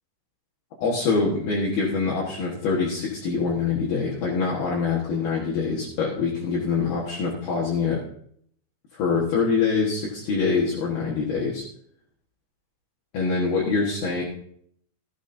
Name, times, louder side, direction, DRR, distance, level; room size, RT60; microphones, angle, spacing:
voice 1, 0.8-8.0 8.9-11.6 13.1-14.2, left 4 dB, 65° left, -5 dB, 3.0 m, -24 dB
13.5 x 12.5 x 2.7 m, 0.64 s
omnidirectional pair, 5.4 m